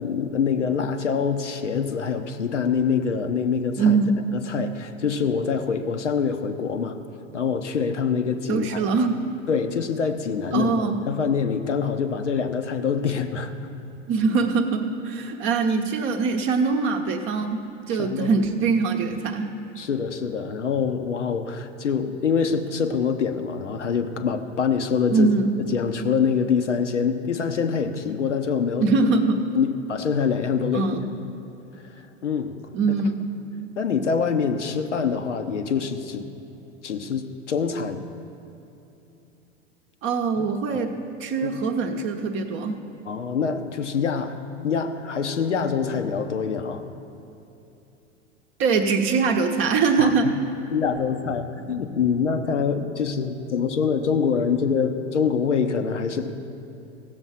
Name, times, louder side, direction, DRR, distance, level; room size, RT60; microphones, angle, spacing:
voice 1, 0.0-4.0 4.5-7.0 7.3-8.8 9.5-13.5 18.0-18.4 19.8-25.3 25.7-28.9 29.5-31.0 31.7-31.8 32.2-32.6 33.8-36.3 36.8-38.0 40.4-40.5 41.4-41.6 43.1-44.4 44.6-46.8 50.0-50.3 50.7-56.3, left 6 dB, 75° left, 8 dB, 0.9 m, -25 dB
voice 2, 3.8-4.2 8.5-9.2 10.5-11.0 14.1-19.6 25.1-25.6 28.8-29.4 30.7-31.0 32.7-33.2 40.0-42.8 48.6-50.3, right 4 dB, 35° right, 4 dB, 0.8 m, -23 dB
16.0 x 7.1 x 5.7 m, 2.9 s
figure-of-eight pair, 90°, 36 cm